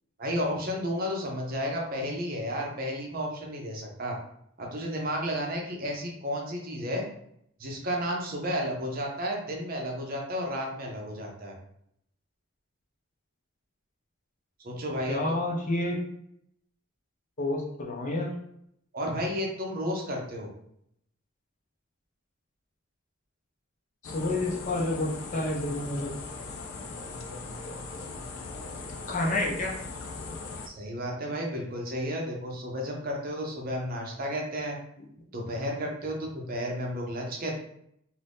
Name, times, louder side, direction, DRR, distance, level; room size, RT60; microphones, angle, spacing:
voice 1, 0.2-4.2 4.6-7.0 7.6-11.5 14.6-15.2 18.9-20.5 30.6-34.8 35.3-37.6, equal, 45° right, 0 dB, 0.7 m, -32 dB
voice 2, 15.1-16.0 17.4-18.3 24.0-26.1 29.1-29.7, left 2 dB, 40° left, -1 dB, 0.7 m, -29 dB
sound 1, 24.0-30.7, left 3 dB, 90° left, 0.4 m, -39 dB
2.7 x 2.6 x 3.4 m, 0.73 s
head